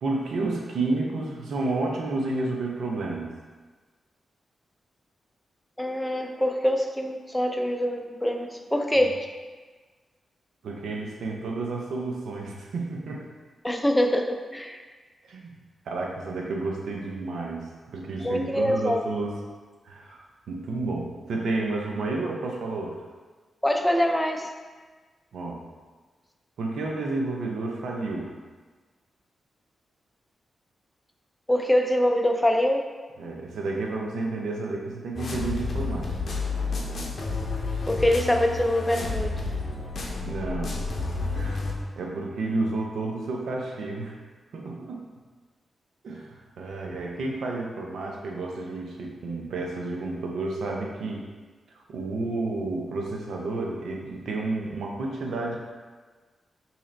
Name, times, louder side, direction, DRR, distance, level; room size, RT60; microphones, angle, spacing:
voice 1, 0.0-3.3 9.0-9.1 10.6-13.3 15.2-15.5 15.9-19.4 19.8-23.0 25.3-25.6 26.6-28.3 33.2-36.1 40.2-40.9 41.2-44.2 44.5-45.0 46.0-51.2 51.9-55.6, right 3 dB, 80° right, -1 dB, 0.6 m, -31 dB
voice 2, 5.8-9.3 13.6-14.8 18.2-19.0 23.6-24.5 31.5-32.9 37.9-39.4, left 1 dB, 10° left, 3 dB, 0.5 m, -24 dB
sound 1, 35.1-41.7, left 3 dB, 60° left, 0.6 m, -30 dB
3.0 x 2.8 x 3.8 m, 1.4 s
supercardioid pair, 50°, 0 cm